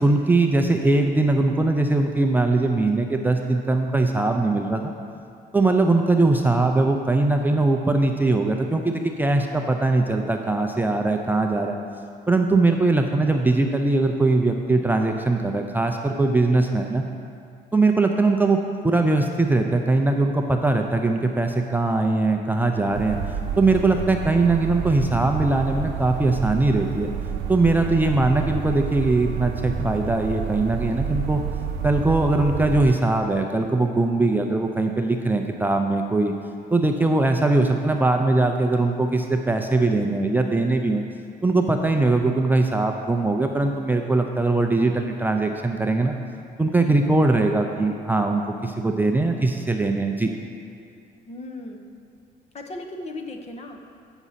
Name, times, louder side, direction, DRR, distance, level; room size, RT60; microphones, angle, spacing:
voice 1, 0.0-4.9 5.5-11.8 12.3-17.0 17.7-18.6 18.8-23.2 23.6-27.1 27.5-31.4 31.8-36.3 36.7-41.0 41.4-46.2 46.6-50.3, right 2 dB, 10° right, 3 dB, 0.4 m, -21 dB
sound 1, 22.9-32.9, right 7 dB, 90° right, 0.7 m, -30 dB
voice 2, 46.8-47.2 51.3-51.8 52.5-53.8, left 2 dB, 40° left, 4 dB, 0.9 m, -37 dB
8.0 x 6.1 x 5.6 m, 2.5 s
cardioid pair, 110°, 17 cm